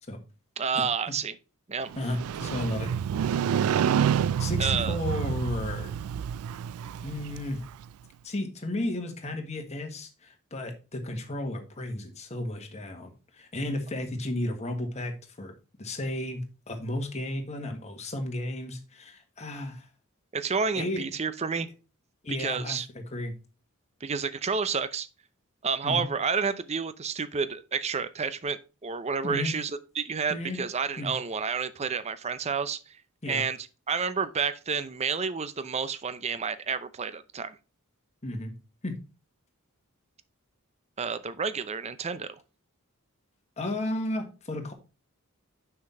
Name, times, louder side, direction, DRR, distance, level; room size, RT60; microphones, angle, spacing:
voice 1, 0.6-1.4 1.7-1.9 4.6-5.0 20.3-21.7 22.3-22.9 24.0-25.1 25.6-32.8 33.3-33.6 33.9-37.6 41.0-42.4, right 5 dB, 30° right, 0.5 m, -30 dB
Motorcycle, 1.9-7.8, right 8 dB, 90° right, 0.3 m, -28 dB
voice 2, 2.0-2.9 4.4-5.9 7.0-7.6 8.2-15.5 15.8-19.9 20.7-21.1 22.2-23.3 25.8-26.1 29.2-29.5 30.3-30.6 31.0-31.1 33.2-33.4 38.2-38.5 38.8-38.9 43.6-44.7, left 1 dB, 30° left, 1.5 m, -33 dB
6.1 x 5.9 x 4.3 m
head